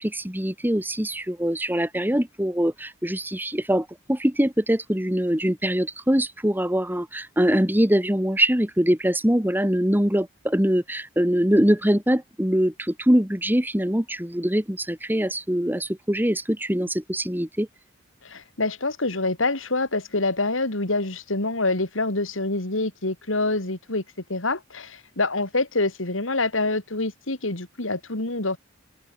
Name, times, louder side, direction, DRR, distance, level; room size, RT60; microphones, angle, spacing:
voice 1, 0.0-17.7, equal, 10° right, 1.8 m, -23 dB
voice 2, 18.2-24.0 24.3-28.6, left 2 dB, 85° left, 3.5 m, -26 dB
head